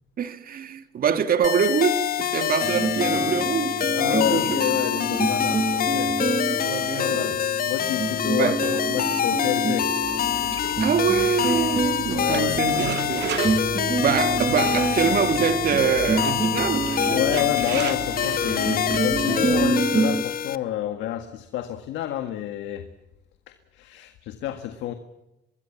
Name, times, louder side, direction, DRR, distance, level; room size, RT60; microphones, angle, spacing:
voice 1, 0.2-4.6 6.5-7.3 8.4-8.6 10.8-13.4 14.0-16.9, right 7 dB, 50° right, 2.2 m, -25 dB
sound 1, 1.4-20.6, left 10 dB, 50° left, 1.2 m, -26 dB
sound 2, 2.6-20.2, right 4 dB, 25° right, 1.2 m, -28 dB
voice 2, 3.9-6.2 7.0-7.4 7.7-9.9 12.1-12.6 17.1-22.9 23.5-24.9, left 11 dB, 80° left, 1.8 m, -29 dB
sound 3, 10.0-19.7, right 9 dB, 70° right, 2.3 m, -35 dB
25.0 x 21.5 x 7.3 m
cardioid pair, 105°, 19 cm